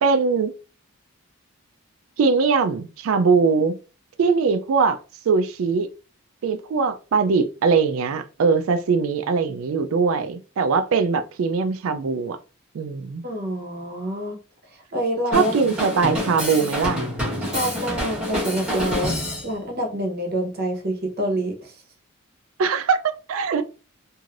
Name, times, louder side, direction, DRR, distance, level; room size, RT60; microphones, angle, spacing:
voice 1, 0.0-0.5 2.2-3.8 4.2-5.0 5.3-5.9 6.4-12.4 12.7-13.2 15.3-17.0 22.6-23.6, right 5 dB, 70° right, 0.4 m, -21 dB
voice 2, 13.2-14.4 14.7-15.5 17.4-19.1 19.4-21.8, equal, 45° right, 0.9 m, -27 dB
Drum kit, 15.3-19.5, equal, 5° right, 1.2 m, -27 dB
3.1 x 2.6 x 2.4 m
head